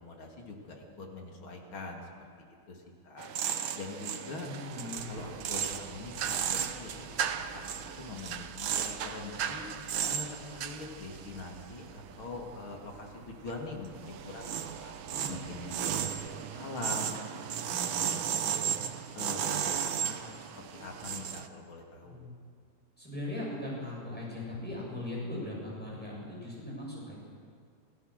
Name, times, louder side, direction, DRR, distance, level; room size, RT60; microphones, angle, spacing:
voice 1, 0.0-2.1 2.4-3.3 3.7-4.5 5.1-7.2 7.5-9.7 10.1-14.9 15.3-18.7 19.1-22.2, left 3 dB, 80° left, 1 dB, 3.4 m, -44 dB
sound 1, 3.2-12.7 13.1-21.5, right 8 dB, 75° right, 1.7 m, -35 dB
voice 2, 4.4-5.1 15.1-15.5 22.0-22.3 23.0-27.1, left 1 dB, 5° left, -5 dB, 7.6 m, -39 dB
sound 2, 4.9-16.4, equal, 55° right, 4.7 m, -54 dB
27.0 x 15.5 x 6.7 m, 2.2 s
omnidirectional pair, 2.3 m